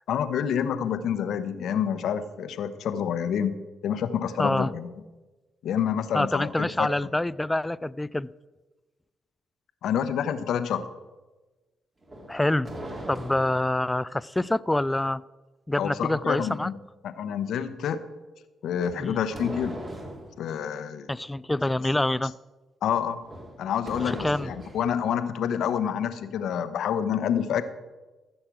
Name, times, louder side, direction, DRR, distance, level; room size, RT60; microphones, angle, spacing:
voice 1, 0.1-3.6 3.8-4.9 5.6-6.9 9.8-10.8 15.8-16.7 17.0-18.0 18.6-19.8 20.4-21.1 22.8-23.3 23.6-27.6, left 8 dB, 70° left, 11 dB, 0.8 m, -28 dB
voice 2, 4.4-4.7 6.1-8.3 12.3-12.7 13.1-15.2 15.7-16.7 19.0-19.2 21.1-22.3 24.1-24.5, left 1 dB, 15° left, 20 dB, 0.4 m, -26 dB
sound 1, 12.0-13.8 18.8-20.3 23.2-24.9, right 1 dB, 35° right, 3.4 m, -39 dB
14.5 x 6.6 x 6.0 m, 1.2 s
supercardioid pair, 55°, 0 cm